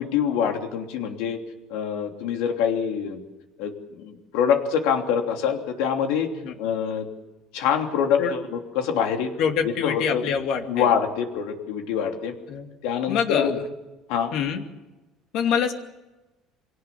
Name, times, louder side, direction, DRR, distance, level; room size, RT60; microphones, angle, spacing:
voice 1, 0.0-1.4 1.7-3.2 3.6-6.3 6.6-7.1 7.5-9.3 9.6-10.3 10.7-12.3 12.8-13.6 14.1-14.3, left 7 dB, 85° left, 4 dB, 3.1 m, -25 dB
voice 2, 9.4-10.9 12.5-12.7 13.1-13.5 14.3-14.6 15.3-15.7, left 7 dB, 65° left, 5 dB, 2.6 m, -25 dB
24.5 x 17.5 x 7.1 m, 1.1 s
cardioid pair, 140°, 0 cm